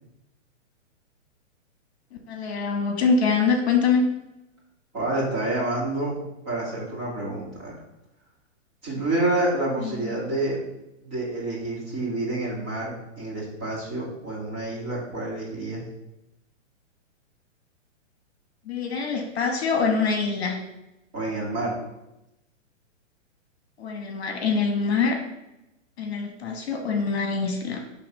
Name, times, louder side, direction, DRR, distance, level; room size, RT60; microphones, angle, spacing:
voice 1, 2.3-4.0 9.8-10.2 18.6-20.6 23.8-25.2 26.0-27.8, left 5 dB, 55° left, 3 dB, 1.2 m, -24 dB
voice 2, 4.9-7.8 8.8-10.6 11.0-15.8 21.1-21.7, right 2 dB, 25° right, -7 dB, 2.4 m, -28 dB
6.9 x 3.4 x 5.3 m, 0.90 s
hypercardioid pair, 175°, 38 cm